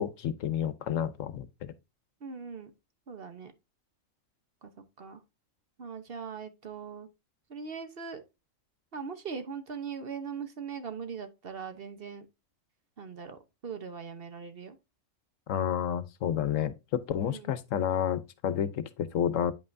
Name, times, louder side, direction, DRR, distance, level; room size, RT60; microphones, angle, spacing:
voice 1, 0.0-1.7 15.5-19.5, left 9 dB, 75° left, 1.1 m, -30 dB
voice 2, 2.2-2.7 3.1-3.5 4.6-4.7 5.0-5.2 5.8-7.1 7.5-8.2 8.9-12.3 13.0-14.8 17.2-17.5, right 6 dB, 50° right, 1.0 m, -40 dB
9.2 x 5.5 x 2.6 m
omnidirectional pair, 1.4 m